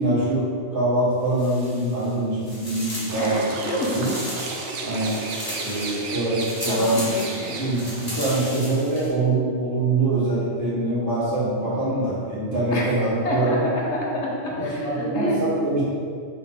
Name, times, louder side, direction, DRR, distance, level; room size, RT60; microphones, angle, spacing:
voice 1, 0.0-3.4 3.9-4.1 4.8-5.2 5.6-7.0 7.6-13.6 14.6-15.8, right 2 dB, 40° right, -9 dB, 1.9 m, -24 dB
sound 1, 1.3-2.1 2.4-9.1, equal, 15° left, 1.4 m, -36 dB
sound 2, 3.1-8.2, right 3 dB, 65° right, 0.9 m, -33 dB
voice 2, 3.2-4.1 6.7-7.6 12.7-15.4, left 1 dB, 60° left, -3 dB, 1.2 m, -28 dB
5.6 x 4.9 x 3.6 m, 2.1 s
omnidirectional pair, 1.4 m